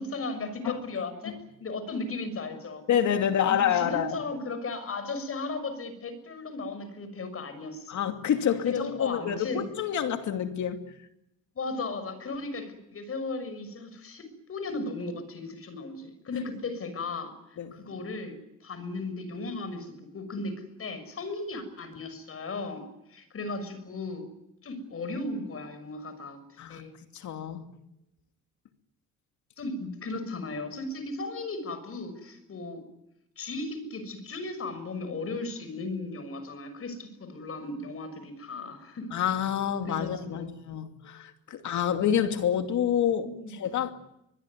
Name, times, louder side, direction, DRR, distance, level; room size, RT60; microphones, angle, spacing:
voice 1, 0.0-2.8 3.5-8.0 8.6-9.7 11.5-18.4 18.6-24.3 24.6-26.4 26.7-26.9 29.6-32.8 33.4-39.1 39.8-40.6 43.2-43.5, left 3 dB, 50° left, 6.4 m, -36 dB
voice 2, 2.9-4.2 7.9-10.8 17.6-17.8 26.6-26.8 27.1-27.7 39.1-43.9, left 9 dB, 70° left, 2.6 m, -28 dB
24.0 x 21.5 x 9.6 m
cardioid pair, 90°, 30 cm